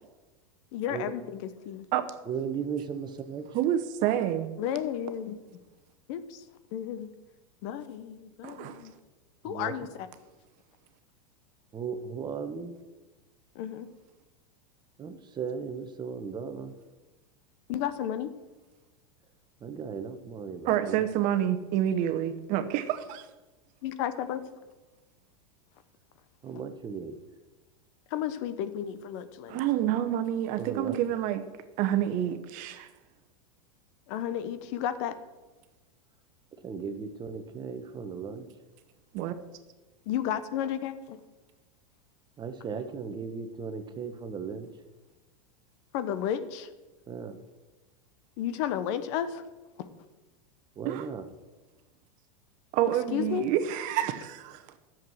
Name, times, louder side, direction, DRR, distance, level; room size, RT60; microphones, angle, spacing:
voice 1, 0.7-1.9 4.6-5.4 6.1-6.4 6.7-7.1 7.6-8.9 9.4-10.1 13.5-13.9 17.7-18.3 23.8-24.4 28.1-29.6 34.1-35.1 40.1-41.2 45.9-46.7 48.4-49.4 53.1-53.5, left 10 dB, 55° left, 1.0 m, -32 dB
voice 2, 2.3-3.5 9.4-9.7 11.7-12.8 15.0-16.7 19.6-21.0 26.4-27.2 30.6-31.0 36.6-38.5 42.4-44.7 47.1-47.4 50.8-51.3, right 6 dB, 25° right, 1.1 m, -36 dB
voice 3, 3.5-4.5 8.4-8.8 20.7-23.2 29.5-31.4 31.8-32.9 39.1-39.3 50.9-51.1 52.7-54.6, right 11 dB, 50° right, 1.0 m, -28 dB
10.5 x 7.5 x 6.3 m
hypercardioid pair, 115°, 18 cm